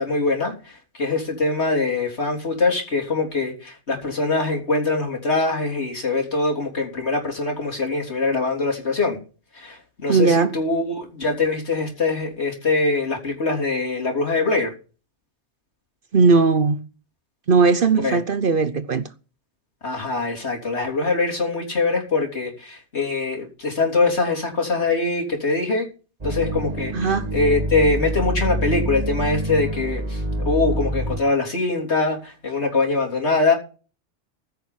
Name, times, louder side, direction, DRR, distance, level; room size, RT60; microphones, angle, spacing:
voice 1, 0.0-9.2 9.6-14.7 18.0-18.2 19.8-25.9 26.2-33.5, left 3 dB, 65° left, 3.8 m, -23 dB
voice 2, 10.1-10.5 16.1-16.9 17.5-19.0 26.9-27.3, right 4 dB, 50° right, 0.9 m, -18 dB
sound 1, 26.2-31.2, right 1 dB, 35° right, 2.2 m, -26 dB
15.0 x 6.5 x 7.4 m
omnidirectional pair, 1.2 m